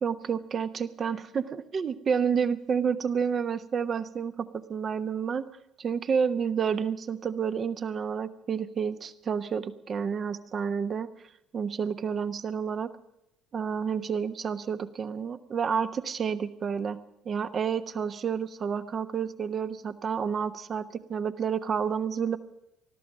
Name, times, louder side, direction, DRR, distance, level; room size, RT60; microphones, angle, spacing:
voice 1, 0.0-5.4 5.8-11.1 11.5-12.9 13.5-17.0 17.2-22.4, right 6 dB, 40° right, 12 dB, 1.0 m, -30 dB
20.0 x 13.0 x 5.0 m, 0.84 s
figure-of-eight pair, 55°, 0 cm